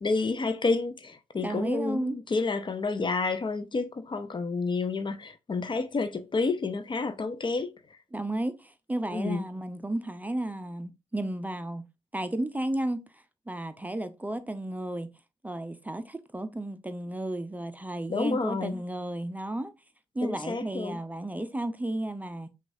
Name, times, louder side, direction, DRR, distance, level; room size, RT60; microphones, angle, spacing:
voice 1, 0.0-7.7 9.1-9.4 18.1-18.8 20.2-21.0, left 3 dB, 35° left, 0.6 m, -29 dB
voice 2, 1.4-2.2 8.1-11.9 12.1-15.1 15.4-19.7 20.1-22.5, right 1 dB, 10° right, 0.5 m, -33 dB
5.9 x 2.4 x 2.7 m
hypercardioid pair, 45°, 14 cm